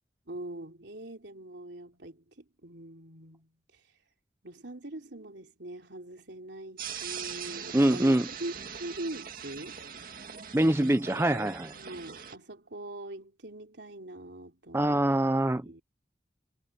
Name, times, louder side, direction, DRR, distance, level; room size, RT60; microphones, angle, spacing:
voice 1, 0.3-3.8 4.4-8.5 8.8-9.8 11.7-15.1 15.5-15.8, right 1 dB, 75° right, 3.4 m, -42 dB
sound 1, 6.8-12.4, right 7 dB, 50° right, 2.2 m, -41 dB
voice 2, 7.7-8.3 10.5-11.7 14.7-15.8, right 1 dB, 15° right, 0.6 m, -24 dB
head